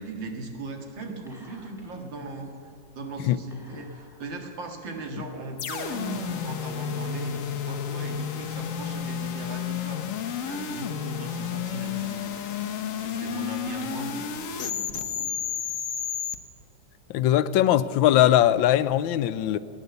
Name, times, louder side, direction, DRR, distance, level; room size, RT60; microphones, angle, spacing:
voice 1, 0.0-12.4 12.9-15.4, right 2 dB, 80° right, 3 dB, 2.6 m, -38 dB
Whispering, 1.3-2.0 2.3-2.4 3.5-4.4 5.0-5.1 5.9-7.1, right 1 dB, ahead, 2.9 m, -41 dB
sound 1, 5.6-16.4, left 8 dB, 50° left, 1.1 m, -31 dB
voice 2, 17.1-19.6, left 12 dB, 90° left, 14 dB, 1.4 m, -20 dB
18.5 x 9.7 x 8.1 m, 2.8 s
omnidirectional pair, 2.0 m